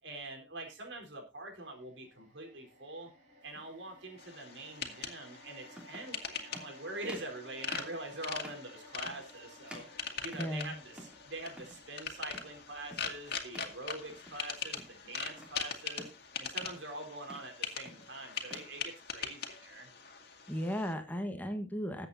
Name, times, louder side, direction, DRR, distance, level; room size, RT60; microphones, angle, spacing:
voice 1, 0.0-3.1 3.4-9.8 10.2-16.1 16.4-19.9, right 2 dB, 80° right, 2 dB, 4.3 m, -44 dB
sound 1, 1.6-15.9 16.3-16.4, equal, 40° right, 5.8 m, -59 dB
sound 2, 3.5-3.7 5.0-5.1 5.7-6.1 6.5-6.7 7.0-7.4 7.7-8.0 8.4-8.7 9.0-9.4 9.7-10.6 10.9-11.2 11.5-11.8 12.3-12.6 12.9-13.2 13.5-13.8 14.1-14.5 14.8-15.6 16.0-16.2 16.6-16.9 17.2-17.5 17.8-18.7, equal, 5° right, 3.0 m, -51 dB
sound 3, 4.2-20.9, left 6 dB, 60° left, 2.0 m, -42 dB
voice 2, 10.4-10.7 20.5-22.1, equal, 10° left, 6 dB, 1.4 m, -35 dB
21.0 x 8.1 x 2.8 m, 0.27 s
head